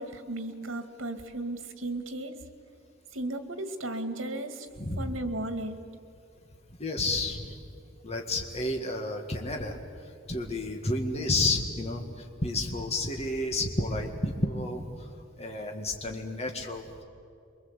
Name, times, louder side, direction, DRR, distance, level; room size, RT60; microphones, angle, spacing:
voice 1, 0.0-2.3 3.1-4.7 5.0-5.8, right 1 dB, 80° right, 8 dB, 2.1 m, -35 dB
voice 2, 6.8-7.6 8.0-9.8 10.3-15.1 15.4-17.0, left 2 dB, 30° left, 2 dB, 1.9 m, -31 dB
28.5 x 23.0 x 8.3 m, 2.5 s
head